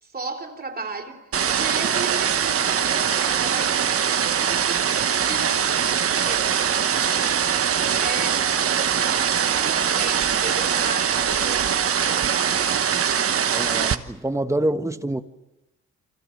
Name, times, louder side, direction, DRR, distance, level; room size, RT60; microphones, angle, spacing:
voice 1, 0.0-1.2 1.5-7.4 8.0-12.7, right 3 dB, 30° right, 3.5 m, -35 dB
sound 1, 1.3-14.0, right 8 dB, 50° right, 1.2 m, -22 dB
voice 2, 13.5-15.2, right 1 dB, 10° right, 1.4 m, -26 dB
29.5 x 25.0 x 6.6 m
cardioid pair, 90°, 30 cm